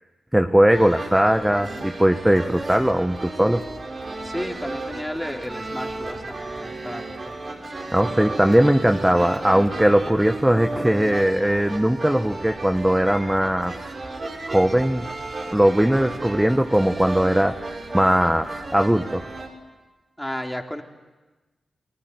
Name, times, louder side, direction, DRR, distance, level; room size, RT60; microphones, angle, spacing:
voice 1, 0.3-3.6 7.9-13.7 14.5-15.1 15.5-17.6 17.9-19.2, right 1 dB, 10° right, 6 dB, 1.3 m, -19 dB
sound 1, 0.7-19.5, right 2 dB, 55° right, 5.9 m, -34 dB
voice 2, 4.2-7.3 20.2-20.8, left 1 dB, 10° left, 3 dB, 3.5 m, -33 dB
29.5 x 20.0 x 9.7 m, 1.2 s
supercardioid pair, 40°, 0 cm